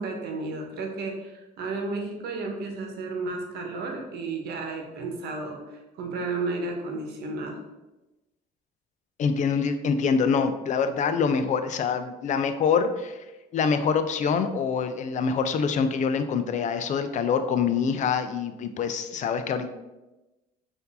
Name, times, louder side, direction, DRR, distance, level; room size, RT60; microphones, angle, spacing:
voice 1, 0.0-7.6, right 3 dB, 75° right, 2 dB, 1.0 m, -33 dB
voice 2, 9.2-13.2 13.5-19.7, left 6 dB, 45° left, 9 dB, 0.4 m, -25 dB
4.4 x 2.7 x 4.0 m, 1.0 s
cardioid pair, 110°, 17 cm